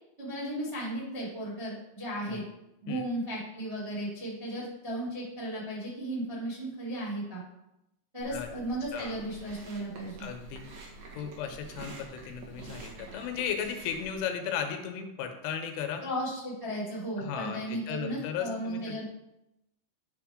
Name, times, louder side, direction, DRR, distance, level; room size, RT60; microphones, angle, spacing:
voice 1, 0.2-2.4 2.8-7.4 8.1-10.3 16.0-19.0, right 1 dB, 20° right, -7 dB, 0.7 m, -35 dB
Chewing mastication, 8.2-14.2, right 3 dB, 70° right, 1.8 m, -47 dB
voice 2, 10.2-10.6 11.1-16.0 17.2-19.0, left 7 dB, 80° left, 5 dB, 3.2 m, -35 dB
10.0 x 3.4 x 4.9 m, 0.88 s
omnidirectional pair, 5.5 m